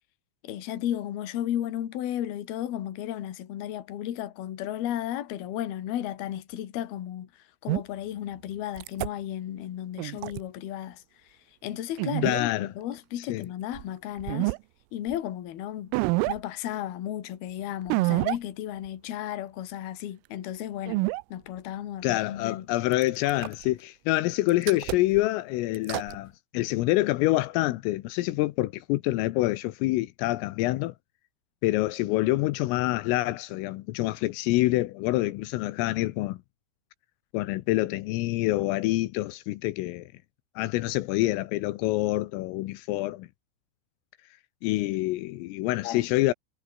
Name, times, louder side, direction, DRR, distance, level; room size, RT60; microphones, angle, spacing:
voice 1, 0.4-11.0 11.6-14.5 14.9-15.9 16.3-21.0 21.3-22.7 45.8-46.1, left 12 dB, 60° left, 3.4 m, -34 dB
sound 1, 7.7-7.8 8.8-9.1 10.0-10.4 12.0-12.4 13.7-13.8 14.2-14.6 15.1-15.2 15.9-16.4 17.9-18.4 18.9-19.0 20.9-21.2 22.9-23.7 24.5-25.2 25.7-26.2, right 23 dB, 85° right, 3.3 m, -27 dB
voice 2, 12.2-12.7 13.2-13.5 22.0-30.9 31.6-36.4 37.3-40.1 40.6-43.3 44.6-46.3, left 18 dB, 80° left, 3.5 m, -26 dB
omnidirectional pair, 5.9 m